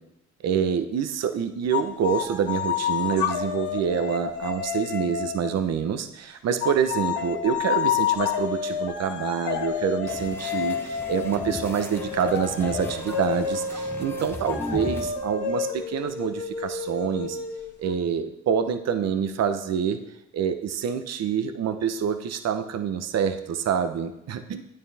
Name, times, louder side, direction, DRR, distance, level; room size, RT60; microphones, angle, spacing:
voice 1, 0.4-17.4 17.8-20.0 20.3-24.6, right 7 dB, 60° right, 9 dB, 0.8 m, -26 dB
sound 1, 1.7-5.6 6.6-17.9, left 8 dB, 70° left, 1.4 m, -29 dB
sound 2, 10.1-15.1, left 1 dB, 10° left, 1.0 m, -37 dB
11.5 x 9.1 x 3.4 m, 0.84 s
cardioid pair, 90°, 30 cm